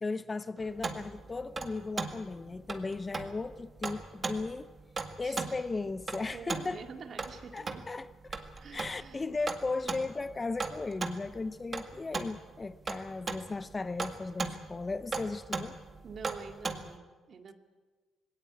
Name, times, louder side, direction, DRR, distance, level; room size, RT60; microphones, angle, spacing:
voice 1, 0.0-4.7 5.2-6.8 7.5-8.4 8.7-15.8, left 3 dB, 25° left, 0.7 m, -36 dB
sound 1, 0.6-17.0, right 4 dB, 35° right, 1.9 m, -38 dB
voice 2, 5.2-5.6 6.3-7.8 8.6-9.2 16.0-17.5, right 5 dB, 55° right, 2.2 m, -47 dB
19.5 x 17.5 x 8.9 m
cardioid pair, 90°, 0 cm